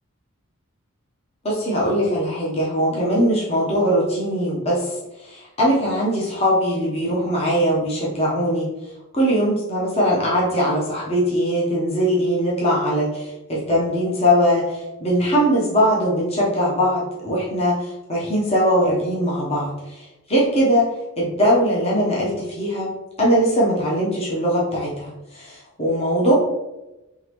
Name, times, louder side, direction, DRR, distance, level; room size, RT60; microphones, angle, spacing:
voice 1, 1.4-8.7 9.1-22.9 23.2-26.3, equal, 30° left, -6 dB, 0.8 m, -21 dB
3.9 x 2.9 x 3.0 m, 1.0 s
head